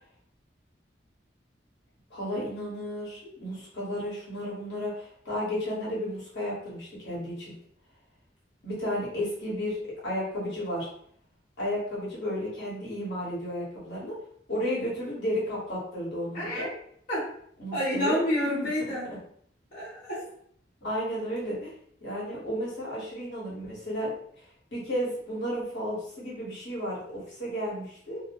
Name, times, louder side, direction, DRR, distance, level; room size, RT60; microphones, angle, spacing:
voice 1, 2.1-7.5 8.6-9.8 10.0-10.9 11.6-14.1 14.5-16.7 17.6-18.2 20.8-21.7 22.0-24.1 24.7-28.2, equal, 65° left, -7 dB, 1.2 m, -33 dB
voice 2, 16.3-16.7 17.1-17.3 17.7-19.1 19.7-20.2, left 1 dB, 50° left, -11 dB, 1.0 m, -28 dB
2.7 x 2.1 x 2.9 m, 0.64 s
head